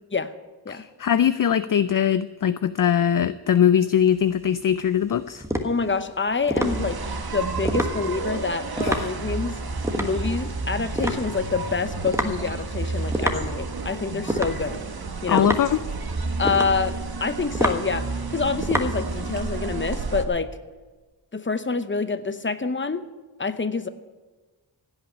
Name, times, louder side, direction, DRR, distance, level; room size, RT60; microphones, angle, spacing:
voice 1, 0.7-5.4 8.8-9.1 15.3-15.8, left 9 dB, 50° left, 14 dB, 0.5 m, -21 dB
sound 1, 4.0-19.6, equal, 5° right, 1.4 m, -30 dB
voice 2, 5.6-9.6 10.0-14.8 15.2-15.5 16.4-20.5 21.3-23.0 23.4-23.9, left 4 dB, 25° left, 11 dB, 0.9 m, -27 dB
sound 2, 6.6-20.3, right 3 dB, 55° right, 1.3 m, -31 dB
16.0 x 5.8 x 9.8 m, 1.3 s
wide cardioid pair, 65°, 45 cm